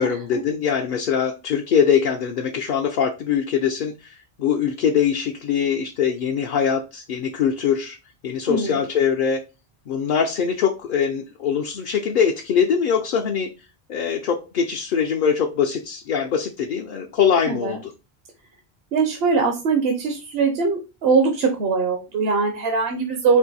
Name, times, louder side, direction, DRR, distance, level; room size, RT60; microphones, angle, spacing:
voice 1, 0.0-8.0 8.2-9.4 9.9-13.5 13.9-17.9, left 7 dB, 60° left, 0.7 m, -22 dB
voice 2, 8.5-8.8 17.5-17.8 18.9-23.4, right 4 dB, 70° right, 0.9 m, -21 dB
4.6 x 2.6 x 4.0 m
omnidirectional pair, 1.0 m